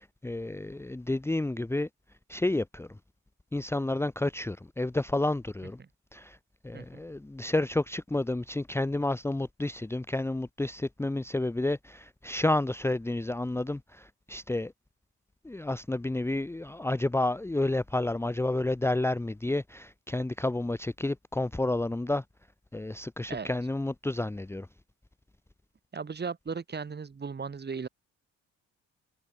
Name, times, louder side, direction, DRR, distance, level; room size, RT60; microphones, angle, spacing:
voice 1, 0.0-1.9 2.3-2.9 3.5-5.8 6.1-6.4 6.6-14.7 15.4-22.2 22.7-24.7, left 2 dB, 10° left, 0.9 m, -30 dB
voice 2, 25.9-27.9, right 5 dB, 35° right, 3.2 m, -36 dB
cardioid pair, 90°, 30 cm